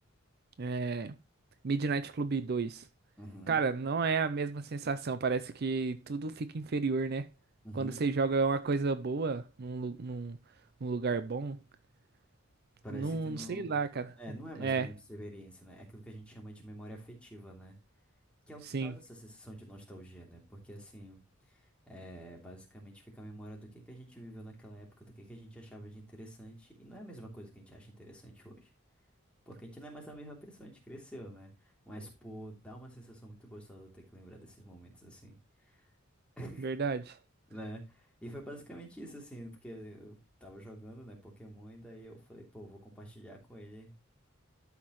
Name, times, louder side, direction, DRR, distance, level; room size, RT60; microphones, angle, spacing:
voice 1, 0.6-1.1 1.6-2.8 3.5-7.3 7.7-10.4 10.8-11.6 12.9-14.1 14.6-14.9 18.7-18.9 36.6-37.2, right 4 dB, 50° right, 0.5 m, -32 dB
voice 2, 3.2-3.6 7.6-8.1 12.8-13.8 14.2-17.8 18.5-21.2 21.5-28.7 29.5-35.4 35.6-35.9 36.4-36.8 37.5-44.0, right 1 dB, 5° left, 3.0 m, -48 dB
12.5 x 5.8 x 3.1 m
head